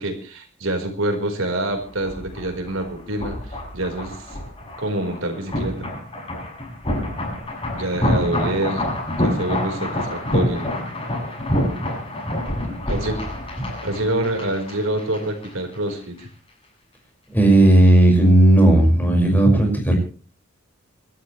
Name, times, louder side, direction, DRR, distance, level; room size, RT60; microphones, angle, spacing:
voice 1, 0.0-4.4 4.8-5.9 7.7-10.7 12.9-13.2 13.8-16.3, right 1 dB, 75° right, 4 dB, 4.6 m, -26 dB
sound 1, 1.7-15.5 15.7-15.9, left 1 dB, 25° left, 7.6 m, -27 dB
voice 2, 17.3-19.9, right 1 dB, 10° left, 1 dB, 5.6 m, -14 dB
27.5 x 13.0 x 3.3 m, 0.37 s
head